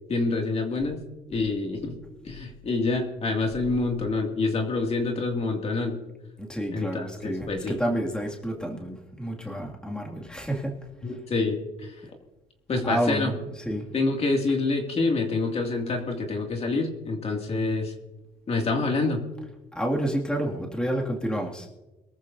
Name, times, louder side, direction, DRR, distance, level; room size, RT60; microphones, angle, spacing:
voice 1, 0.1-1.0 1.3-1.9 2.2-6.0 6.7-7.8 11.0-11.9 12.7-13.3 13.9-17.9 18.5-19.2, left 3 dB, 35° left, 2 dB, 2.5 m, -27 dB
voice 2, 6.4-10.8 12.8-13.9 19.7-21.7, right 1 dB, 5° left, -1 dB, 2.3 m, -29 dB
23.0 x 14.0 x 2.7 m, 1.1 s
cardioid pair, 110°, 17 cm